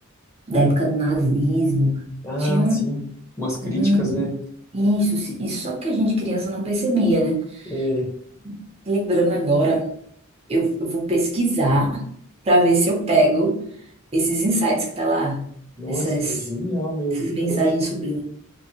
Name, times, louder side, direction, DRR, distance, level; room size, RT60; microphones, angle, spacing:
voice 1, 0.5-2.0 2.4-2.8 3.6-4.2 4.7-7.7 8.4-8.5 8.9-9.9 10.5-12.1 12.4-13.6 14.1-15.4 15.9-16.3 17.2-18.2, right 1 dB, 30° right, -1 dB, 0.6 m, -21 dB
voice 2, 2.2-3.0 3.4-4.3 7.7-8.1 15.8-17.7, equal, 15° left, -2 dB, 0.8 m, -26 dB
2.7 x 2.5 x 2.7 m, 0.64 s
head